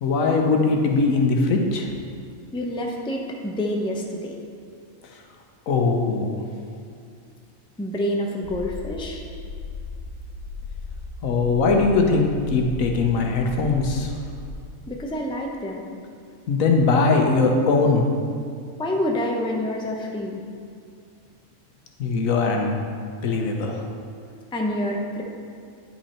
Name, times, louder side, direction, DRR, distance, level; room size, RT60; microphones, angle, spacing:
voice 1, 0.0-1.9 5.7-6.4 11.2-14.1 16.5-18.0 22.0-22.7 23.2-23.8, left 3 dB, 80° left, 2 dB, 1.3 m, -20 dB
voice 2, 2.5-4.3 7.8-9.2 14.9-15.8 18.8-20.4 24.5-25.2, left 1 dB, 5° left, 0 dB, 0.5 m, -27 dB
sound 1, 8.4-14.5, left 3 dB, 70° right, 1.3 m, -36 dB
9.5 x 5.8 x 4.3 m, 2.3 s
omnidirectional pair, 1.4 m